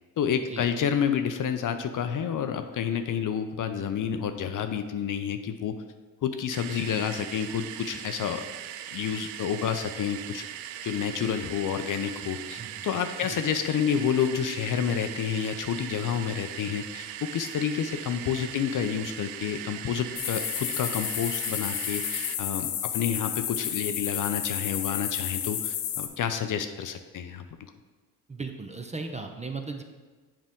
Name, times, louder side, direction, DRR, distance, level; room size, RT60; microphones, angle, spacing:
voice 1, 0.2-5.8 6.2-8.4 8.9-10.4 10.8-27.4, left 8 dB, 45° left, 8 dB, 0.6 m, -29 dB
sound 1, 6.5-22.4, right 11 dB, 75° right, 0.5 m, -40 dB
voice 2, 12.6-12.9 13.2-13.4 28.3-29.8, right 4 dB, 15° right, 5 dB, 0.6 m, -37 dB
sound 2, 20.2-26.1, left 10 dB, 85° left, 0.7 m, -31 dB
7.3 x 5.1 x 3.6 m, 1.3 s
hypercardioid pair, 60°, 45 cm